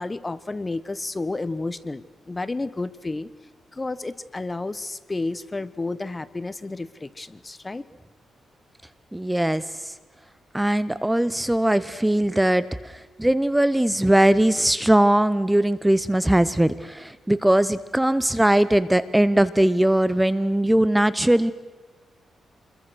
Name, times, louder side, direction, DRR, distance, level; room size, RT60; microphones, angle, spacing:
voice 1, 0.0-3.3 3.7-7.8, left 2 dB, 25° left, 16 dB, 1.1 m, -31 dB
voice 2, 9.1-9.6 10.5-12.9 13.2-21.5, right 1 dB, 10° right, 16 dB, 0.9 m, -20 dB
28.5 x 22.0 x 6.3 m, 1.3 s
cardioid pair, 85°, 0 cm